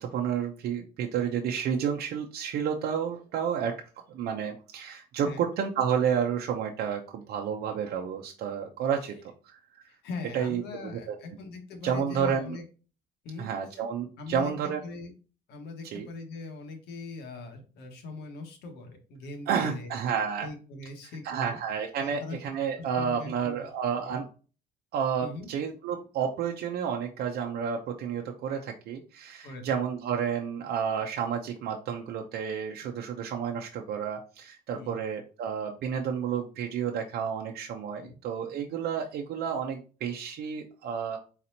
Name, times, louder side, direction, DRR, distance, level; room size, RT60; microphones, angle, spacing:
voice 1, 0.0-3.7 4.1-9.1 9.4-9.8 10.3-10.6 11.1-11.2 11.8-12.6 13.4-14.8 15.8-16.1 19.5-20.5 21.2-24.3 24.9-41.2, right 7 dB, 70° right, 2 dB, 0.7 m, -30 dB
voice 2, 9.9-12.6 13.2-13.5 14.2-15.1 15.5-19.9 20.4-21.6 22.0-22.4 22.8-23.6 23.9-24.2 25.2-25.5 29.4-29.6 34.7-35.0 38.0-38.2, left 3 dB, 80° left, 4 dB, 1.4 m, -41 dB
4.3 x 4.1 x 2.7 m, 0.36 s
cardioid pair, 110°, 17 cm